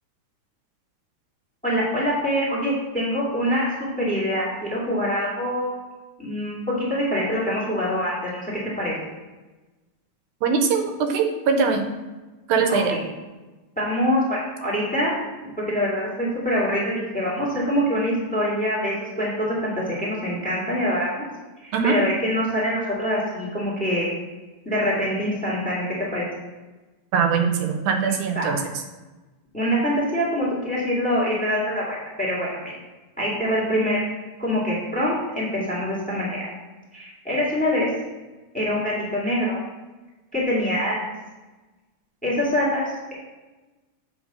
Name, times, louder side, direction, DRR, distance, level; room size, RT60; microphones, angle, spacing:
voice 1, 1.6-3.7 4.0-5.7 6.2-6.6 6.9-8.4 8.8-8.9 12.7-13.0 13.8-15.1 15.4-21.3 21.6-24.1 24.6-26.2 28.3-28.5 29.5-32.7 33.2-34.0 34.4-36.4 36.9-37.9 38.5-39.6 40.3-41.0 42.2-42.8, equal, 5° left, -6 dB, 1.1 m, -24 dB
voice 2, 10.4-11.8 12.5-12.9 21.7-22.0 27.1-28.6, right 5 dB, 80° right, 5 dB, 2.1 m, -21 dB
7.2 x 3.9 x 5.2 m, 1.2 s
omnidirectional pair, 3.7 m